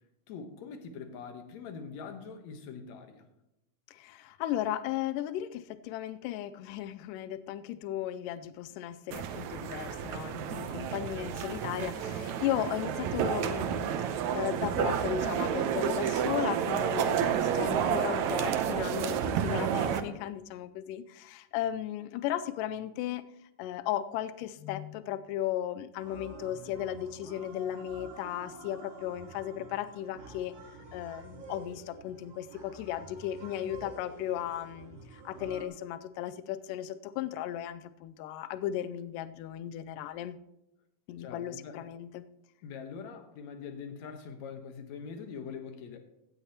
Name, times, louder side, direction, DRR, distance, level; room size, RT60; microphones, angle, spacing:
voice 1, 0.3-3.2 41.2-41.8 42.6-46.0, left 6 dB, 65° left, 6 dB, 1.9 m, -43 dB
voice 2, 3.9-23.2 23.6-30.5 30.9-40.4 41.1-42.3, left 12 dB, 85° left, 13 dB, 1.9 m, -36 dB
sound 1, 9.1-20.0, right 8 dB, 85° right, 1.6 m, -30 dB
sound 2, 26.0-35.7, right 2 dB, 40° right, 3.9 m, -48 dB
16.0 x 12.5 x 2.9 m, 0.88 s
omnidirectional pair, 4.3 m